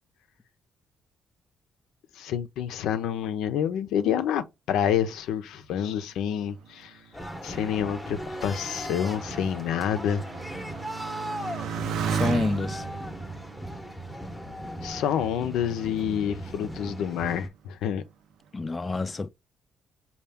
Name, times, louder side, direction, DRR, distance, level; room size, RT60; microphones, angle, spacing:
voice 1, 2.1-7.0 7.4-10.3 14.8-18.0, left 9 dB, 85° left, 0.5 m, -28 dB
Motorcycle, 6.2-15.2 15.9-16.5, right 6 dB, 80° right, 0.6 m, -35 dB
sound 1, 7.1-17.5, equal, 5° left, 0.7 m, -38 dB
voice 2, 12.1-12.9 18.5-19.3, left 3 dB, 25° left, 0.4 m, -28 dB
5.5 x 2.3 x 3.4 m
cardioid pair, 90°, 0 cm